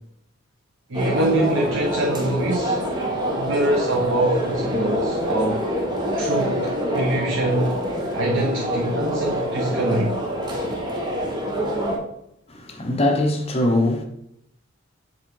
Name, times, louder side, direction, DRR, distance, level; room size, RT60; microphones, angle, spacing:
sound 1, 0.9-12.0, equal, 20° right, 1.2 m, -25 dB
voice 1, 0.9-2.8 3.3-5.6 6.2-7.8 8.1-10.2, right 1 dB, 80° right, 1.0 m, -24 dB
voice 2, 12.5-14.0, left 1 dB, 30° left, 0.9 m, -21 dB
7.1 x 3.7 x 4.7 m
head